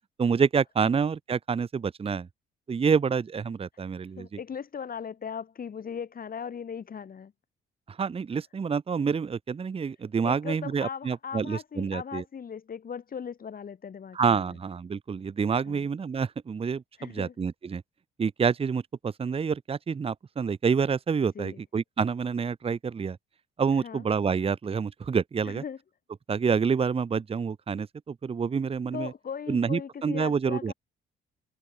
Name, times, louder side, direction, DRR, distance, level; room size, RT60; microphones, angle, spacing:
voice 1, 0.2-2.3 2.7-4.3 7.9-12.2 14.1-17.8 18.2-23.2 23.6-25.6 26.3-29.1 29.5-30.7, right 6 dB, 30° right, 0.8 m, -28 dB
voice 2, 4.2-7.3 10.2-14.4 15.7-15.9 17.0-17.3 21.4-21.6 23.7-24.1 25.5-25.8 28.9-30.7, left 7 dB, 45° left, 3.8 m, -38 dB
cardioid pair, 90°, 20 cm